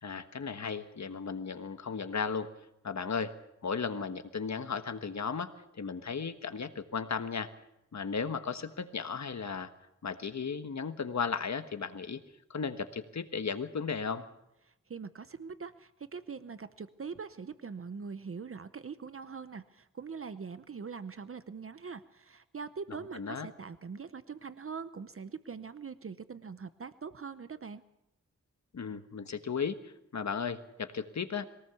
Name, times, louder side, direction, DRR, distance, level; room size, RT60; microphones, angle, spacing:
voice 1, 0.0-2.5 2.8-3.3 3.6-7.5 7.9-9.7 10.0-12.2 12.5-14.2 23.1-23.5 28.7-31.5, left 5 dB, 65° left, 10 dB, 1.4 m, -35 dB
voice 2, 14.6-27.8, right 5 dB, 45° right, 13 dB, 0.7 m, -43 dB
22.0 x 18.0 x 7.0 m, 0.88 s
wide cardioid pair, 110°, 29 cm